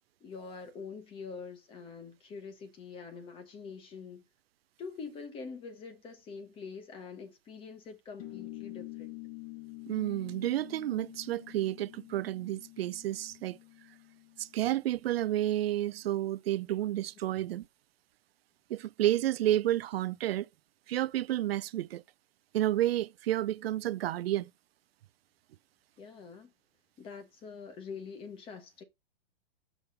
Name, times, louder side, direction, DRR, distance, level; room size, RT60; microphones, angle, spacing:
voice 1, 0.2-4.2 4.8-9.1 26.0-26.5 27.0-28.8, left 5 dB, 20° left, 1.0 m, -45 dB
sound 1, 8.2-15.2, left 18 dB, 40° left, 1.1 m, -48 dB
voice 2, 9.9-13.6 14.4-17.6 18.7-20.5 20.9-22.0 22.5-24.5, right 13 dB, 80° right, 0.5 m, -30 dB
6.0 x 3.5 x 5.2 m
hypercardioid pair, 155°, 30 cm